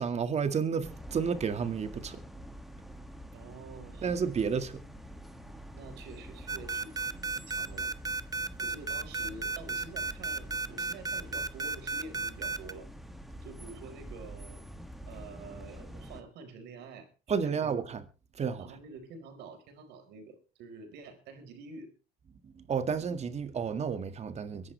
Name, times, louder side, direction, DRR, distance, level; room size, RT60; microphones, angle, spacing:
voice 1, 0.0-2.2 4.0-4.8 17.3-18.0 18.4-18.7 22.4-24.7, right 6 dB, 40° right, 1.9 m, -31 dB
sound 1, 0.8-16.2, equal, ahead, 2.2 m, -46 dB
voice 2, 3.3-4.2 5.7-7.9 8.6-12.9 13.4-14.7 15.1-17.1 17.4-17.7 18.6-21.9, right 4 dB, 85° right, 4.4 m, -48 dB
sound 2, 6.5-12.7, right 3 dB, 20° right, 1.0 m, -33 dB
23.0 x 11.0 x 3.3 m
cardioid pair, 110°, 17 cm